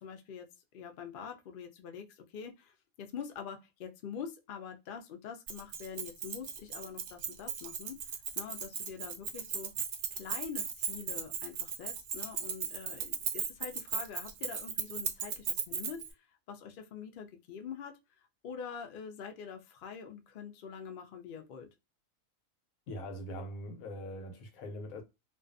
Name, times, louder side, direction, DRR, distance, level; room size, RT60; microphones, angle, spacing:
voice 1, 0.0-0.5 0.7-8.0 8.4-9.7 10.1-17.9 18.4-21.7, left 7 dB, 70° left, 0.5 m, -45 dB
Keys jangling, 5.5-16.1, right 7 dB, 60° right, 0.6 m, -37 dB
voice 2, 22.9-25.0, equal, 90° left, 1.1 m, -42 dB
2.4 x 2.2 x 2.5 m
omnidirectional pair, 1.4 m